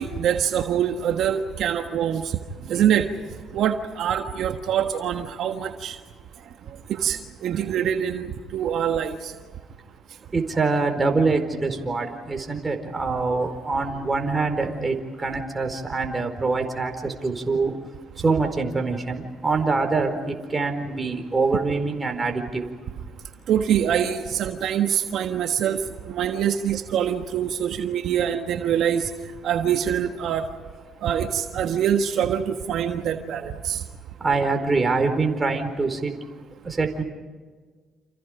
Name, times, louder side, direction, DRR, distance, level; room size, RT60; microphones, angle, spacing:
voice 1, 0.0-3.1 3.5-6.0 6.7-9.3 23.5-29.1 29.4-30.5 31.0-33.8, right 9 dB, 70° right, 6 dB, 1.5 m, -24 dB
voice 2, 10.3-17.7 18.2-22.6 34.2-36.1 36.6-37.0, right 3 dB, 30° right, 5 dB, 4.5 m, -24 dB
30.0 x 28.0 x 5.1 m, 1.5 s
supercardioid pair, 60°, 0 cm